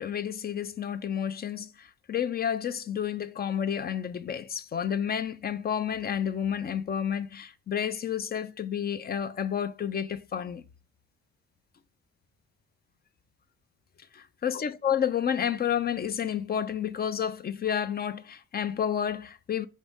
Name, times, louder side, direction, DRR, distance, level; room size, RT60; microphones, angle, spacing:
voice 1, 0.0-10.6 14.1-19.7, left 8 dB, 35° left, 0.4 m, -30 dB
5.1 x 2.6 x 3.4 m
cardioid pair, 90°, 30 cm